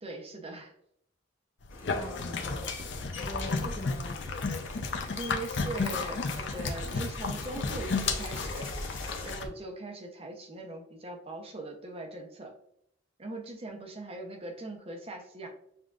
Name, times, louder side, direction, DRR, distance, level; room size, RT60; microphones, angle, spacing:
voice 1, 0.0-0.7 5.1-8.9 9.2-12.5 13.2-15.5, right 2 dB, 30° right, 1 dB, 0.7 m, -41 dB
sound 1, 1.6-9.5, left 4 dB, 60° left, 0.5 m, -33 dB
sound 2, 1.7-9.3, left 4 dB, 80° left, 1.3 m, -44 dB
voice 2, 1.8-4.1, left 1 dB, 40° left, -2 dB, 1.3 m, -43 dB
6.7 x 2.4 x 2.5 m, 0.71 s
head